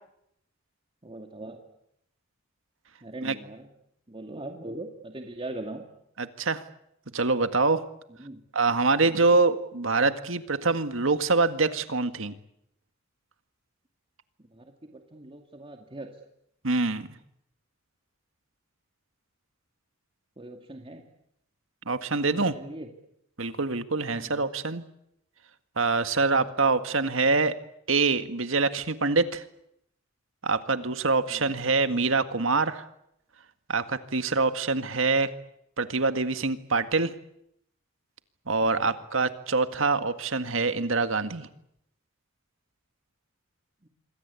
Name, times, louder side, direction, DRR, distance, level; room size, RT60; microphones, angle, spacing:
voice 1, 1.0-1.6 3.0-3.7 4.1-5.8 8.2-8.4 9.0-9.3 14.5-16.1 20.4-21.0 22.4-22.9 24.1-24.3 31.3-31.5 38.8-39.0 43.8-43.9, right 1 dB, 25° right, 3 dB, 2.4 m, -41 dB
voice 2, 6.2-6.6 7.1-7.8 8.5-12.3 16.6-17.1 21.9-22.6 23.4-24.8 25.8-27.5 27.9-29.4 30.4-32.9 33.7-35.3 35.8-37.1 38.5-41.5, right 3 dB, 70° right, 9 dB, 1.9 m, -25 dB
27.0 x 23.0 x 8.4 m, 0.76 s
head